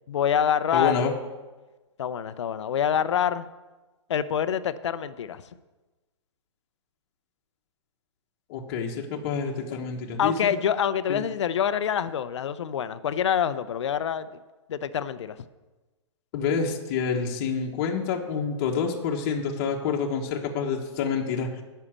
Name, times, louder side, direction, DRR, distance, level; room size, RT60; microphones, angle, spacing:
voice 1, 0.1-1.1 2.0-3.4 4.1-5.4 10.2-14.3 14.7-15.4, left 8 dB, 65° left, 14 dB, 0.6 m, -26 dB
voice 2, 0.7-1.1 8.5-10.5 11.1-11.2 16.3-21.5, left 6 dB, 35° left, 1 dB, 1.2 m, -28 dB
9.9 x 5.6 x 7.4 m, 1.2 s
hypercardioid pair, 145°, 16 cm